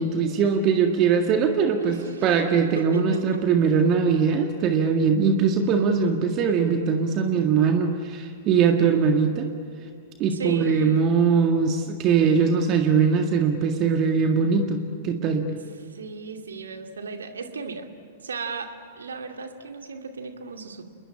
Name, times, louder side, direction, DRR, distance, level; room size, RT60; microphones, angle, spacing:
voice 1, 0.0-9.5 10.2-15.5, right 6 dB, 35° right, 4 dB, 1.9 m, -21 dB
voice 2, 1.8-2.4 2.7-3.4 10.3-11.1 15.9-17.9 18.2-20.8, right 5 dB, 70° right, 5 dB, 2.4 m, -35 dB
29.0 x 21.5 x 8.8 m, 2.3 s
figure-of-eight pair, 100°, 0 cm